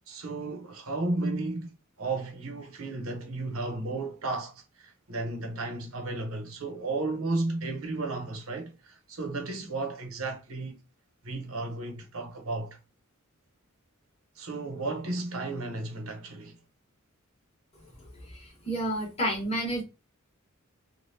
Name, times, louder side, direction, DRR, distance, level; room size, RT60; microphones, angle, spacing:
voice 1, 0.1-10.8 11.2-12.8 14.4-16.6, right 2 dB, 75° right, 0.9 m, -34 dB
voice 2, 18.3-19.8, right 1 dB, 30° left, 1.4 m, -30 dB
3.3 x 2.4 x 2.7 m
head